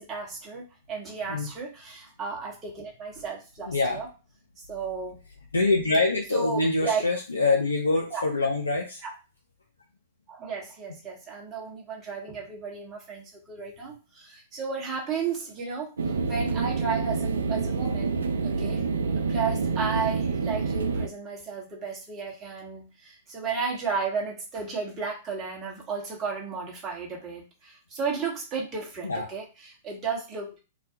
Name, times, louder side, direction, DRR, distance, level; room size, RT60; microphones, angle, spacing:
voice 1, 0.0-4.1 4.7-5.2 6.3-7.0 8.1-8.2 9.0-9.1 10.3-18.2 18.4-18.8 19.3-30.6, right 5 dB, 25° right, -3 dB, 1.0 m, -33 dB
voice 2, 3.7-4.0 5.5-9.0 29.0-29.2, left 3 dB, 85° left, 1 dB, 0.4 m, -25 dB
sound 1, 16.0-21.1, right 4 dB, 75° right, 0.3 m, -27 dB
2.4 x 2.2 x 2.7 m, 0.32 s
figure-of-eight pair, 105°, 0 cm